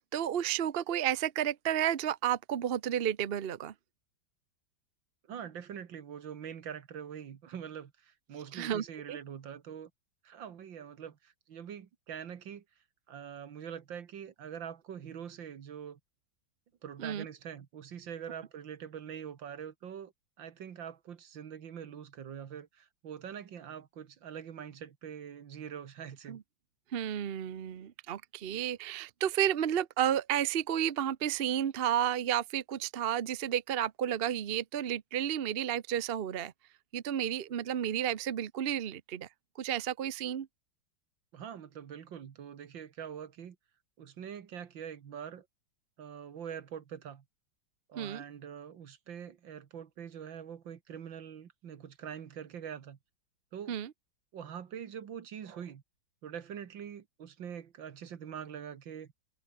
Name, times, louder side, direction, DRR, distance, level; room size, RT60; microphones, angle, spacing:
voice 1, 0.0-3.7 8.5-9.2 17.0-17.2 26.3-26.4 26.9-36.5 36.9-39.3 39.6-40.5 48.0-48.2 53.7-53.9, right 10 dB, 55° right, 0.6 m, -32 dB
voice 2, 5.3-9.9 10.2-12.6 13.1-16.0 16.8-20.1 20.4-26.4 41.3-43.6 44.0-45.5 46.0-47.2 47.9-53.0 53.5-53.7 54.3-55.8 56.2-59.1, right 8 dB, 70° right, 2.2 m, -44 dB
omnidirectional pair, 2.2 m